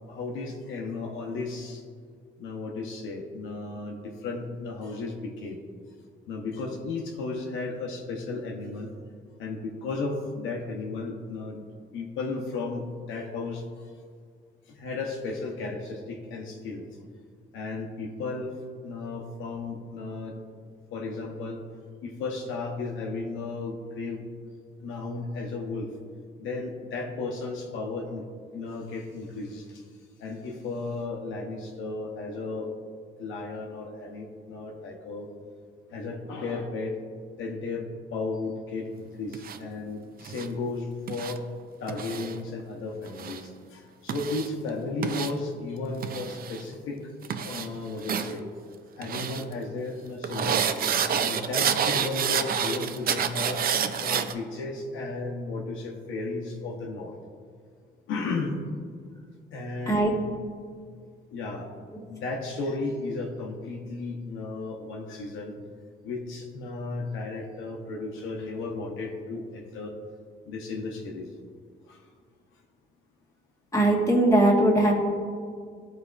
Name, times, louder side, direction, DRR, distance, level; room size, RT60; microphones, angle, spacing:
voice 1, 0.1-1.8 2.4-5.6 6.3-8.9 9.4-11.6 11.9-13.6 14.7-16.9 17.5-20.4 20.9-21.6 22.0-24.3 24.8-25.9 26.4-28.2 28.5-29.8 30.2-32.7 33.2-35.3 35.9-36.9 37.4-41.4 41.8-47.1 47.4-48.4 49.0-50.6 51.2-53.6 54.0-57.1 58.1-58.6 59.5-60.1 61.3-61.7 62.1-65.5 66.0-70.0 70.5-71.3 71.9-72.1, left 3 dB, 85° left, 0 dB, 0.8 m, -34 dB
sound 1, 39.3-39.6 40.2-40.5 41.1-41.4 41.9-42.3 43.0-43.4 44.1-44.5 45.0-45.3 46.0-46.6 47.2-47.7 48.0-48.3 49.0-49.4 50.2-54.3, right 7 dB, 50° right, 0.4 m, -28 dB
voice 2, 73.7-74.9, right 1 dB, 15° left, -2 dB, 1.4 m, -20 dB
12.0 x 4.1 x 2.4 m, 2.1 s
cardioid pair, 90°, 20 cm